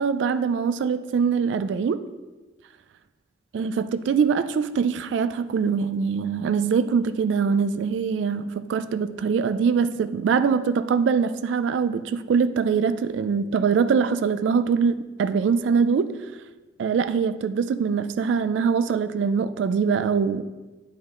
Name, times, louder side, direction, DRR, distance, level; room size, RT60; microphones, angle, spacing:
voice 1, 0.0-2.1 3.5-16.3 16.8-20.4, right 6 dB, 75° right, 0.3 m, -23 dB
9.0 x 5.1 x 3.6 m
head